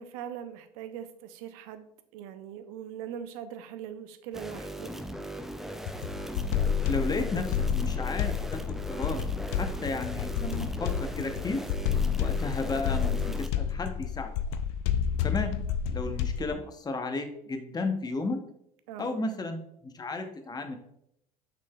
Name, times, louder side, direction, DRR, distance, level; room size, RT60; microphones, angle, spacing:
voice 1, 0.0-4.9 18.9-19.2, right 9 dB, 70° right, 10 dB, 0.6 m, -41 dB
sound 1, 4.3-13.5, right 1 dB, ahead, 0.4 m, -39 dB
sound 2, 5.9-16.5, left 8 dB, 65° left, 0.4 m, -30 dB
voice 2, 6.9-8.6 8.9-9.2 9.5-11.6 12.2-14.3 15.2-15.5 15.9-18.4 19.0-20.8, left 3 dB, 20° left, 6 dB, 0.8 m, -33 dB
6.1 x 3.8 x 2.3 m, 0.75 s
hypercardioid pair, 75°, 19 cm